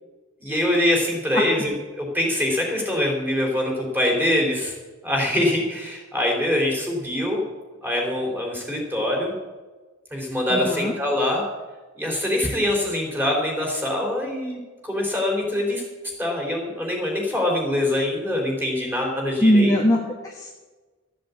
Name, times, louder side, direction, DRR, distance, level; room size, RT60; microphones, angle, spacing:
voice 1, 0.4-1.7 2.0-4.7 5.0-7.4 7.8-9.3 10.1-11.5 11.9-14.6 14.8-15.8 16.2-19.8, left 1 dB, 10° right, 0 dB, 3.4 m, -24 dB
voice 2, 10.5-10.9 19.4-20.5, equal, 15° left, -2 dB, 1.3 m, -20 dB
13.5 x 7.8 x 8.3 m, 1.3 s
head